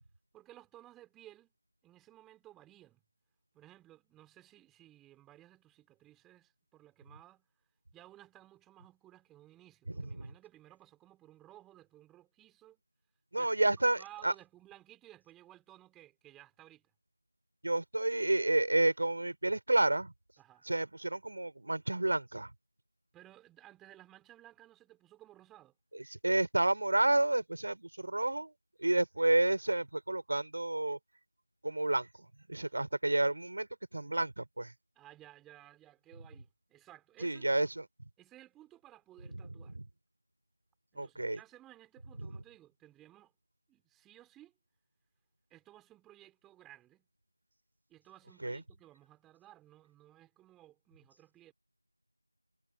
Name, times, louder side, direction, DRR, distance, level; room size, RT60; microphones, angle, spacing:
voice 1, 0.3-1.5 1.8-3.0 3.5-7.5 7.9-12.8 13.3-16.9 20.4-20.6 23.1-25.7 34.9-37.5 38.2-39.8 40.9-43.3 43.7-44.5 45.5-47.1 47.9-51.5, right 14 dB, 5° right, 4.4 m, -57 dB
voice 2, 13.3-14.3 17.6-20.1 20.6-22.5 25.9-28.5 28.8-31.0 31.6-32.1 32.5-34.7 37.2-37.8 39.7-39.8 41.0-41.4 48.4-48.6, right 2 dB, 35° right, 4.2 m, -30 dB
figure-of-eight pair, 175°, 0 cm